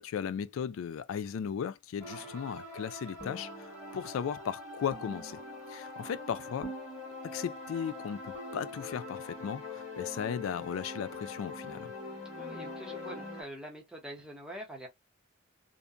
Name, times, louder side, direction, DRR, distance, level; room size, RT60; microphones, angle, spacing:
voice 1, 0.0-5.4 5.7-6.7 7.2-11.9, left 7 dB, 85° left, 0.3 m, -36 dB
sound 1, 2.0-13.4, left 2 dB, 15° left, 1.5 m, -43 dB
voice 2, 12.3-14.9, right 1 dB, 5° right, 0.8 m, -45 dB
2.7 x 2.1 x 2.4 m
head